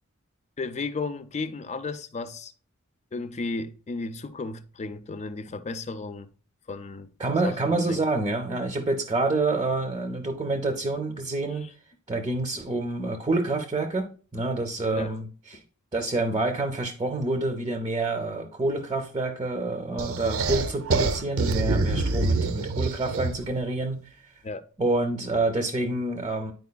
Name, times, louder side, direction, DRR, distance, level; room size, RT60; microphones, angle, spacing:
voice 1, 0.6-2.5 3.1-6.3 6.7-7.1 7.4-8.0 14.9-15.1 15.5-15.6 24.4-24.6, left 3 dB, 30° left, 0.4 m, -34 dB
voice 2, 7.2-11.7 12.1-15.6 15.9-24.0 24.8-26.5, right 2 dB, 20° right, 0.5 m, -27 dB
sound 1, 20.0-23.5, right 3 dB, 70° right, 0.6 m, -26 dB
9.4 x 4.6 x 2.2 m
head